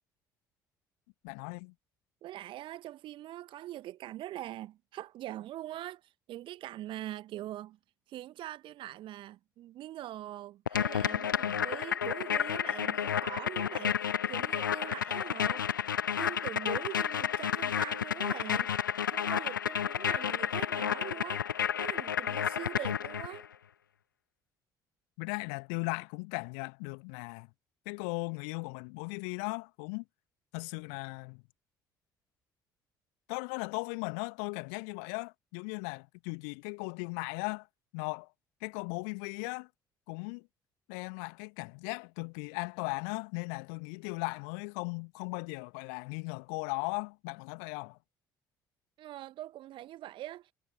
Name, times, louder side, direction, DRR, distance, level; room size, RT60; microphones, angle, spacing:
voice 1, 1.2-1.7 25.2-27.5 27.9-30.0 30.5-31.4 33.3-37.7 37.9-38.3 38.6-39.7 40.1-40.5 40.9-48.0, left 40 dB or more, 65° left, 1.8 m, -37 dB
voice 2, 2.2-7.8 8.1-15.7 16.2-18.7 19.0-21.4 21.8-23.5 49.0-50.5, right 14 dB, 50° right, 1.2 m, -43 dB
sound 1, 10.7-23.5, left 8 dB, 80° left, 0.8 m, -31 dB
figure-of-eight pair, 50°, 11 cm